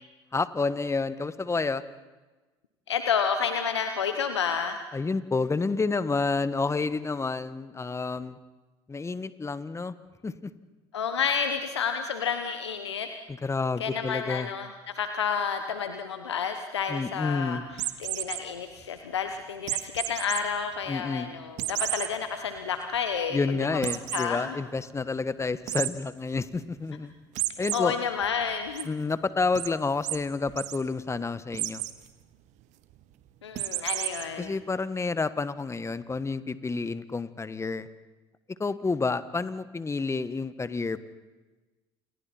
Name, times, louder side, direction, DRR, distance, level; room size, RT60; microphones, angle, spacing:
voice 1, 0.3-1.8 4.9-8.4 8.9-9.9 10.2-10.5 13.4-14.5 16.9-17.6 20.9-21.3 23.3-27.1 27.6-27.9 28.8-31.8 34.4-37.9 38.6-41.0, left 4 dB, 20° left, 14 dB, 1.4 m, -29 dB
voice 2, 2.9-4.8 10.9-13.1 13.8-24.6 27.7-28.9 33.4-34.5, left 6 dB, 85° left, 7 dB, 1.1 m, -30 dB
sound 1, 17.7-18.4 19.7-20.4 20.8-20.9 21.6-22.1 22.6-22.7 22.9-23.0 23.8-24.3 25.7-25.9 27.3-27.8 28.2-28.8 29.5-29.7 30.0-30.2 30.5-30.8 31.5-31.9 33.5-34.2, right 16 dB, 60° right, 1.4 m, -31 dB
29.5 x 28.0 x 4.4 m, 1.2 s
hypercardioid pair, 60°, 14 cm